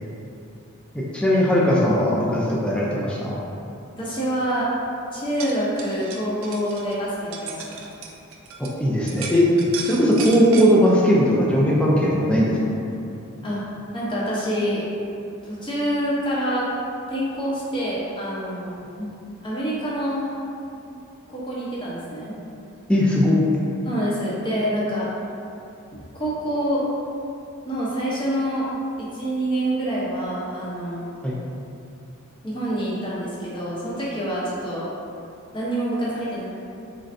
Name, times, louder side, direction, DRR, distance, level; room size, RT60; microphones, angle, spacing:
voice 1, 0.9-3.4 8.8-9.5 9.8-12.8 19.0-19.3 22.9-23.4 31.2-31.4, equal, 5° left, -6 dB, 0.4 m, -19 dB
voice 2, 4.0-4.7 5.1-7.6 13.4-13.6 13.9-14.8 15.4-16.7 17.1-18.7 19.4-20.3 20.9-21.0 21.3-22.4 23.8-25.1 26.1-26.8 27.6-28.7 29.0-31.0 32.4-34.9 35.5-36.5, equal, 20° left, -8 dB, 0.7 m, -26 dB
sound 1, 5.2-8.7 9.1-10.7, right 5 dB, 60° right, 0.4 m, -35 dB
3.8 x 3.2 x 2.6 m, 2.7 s
head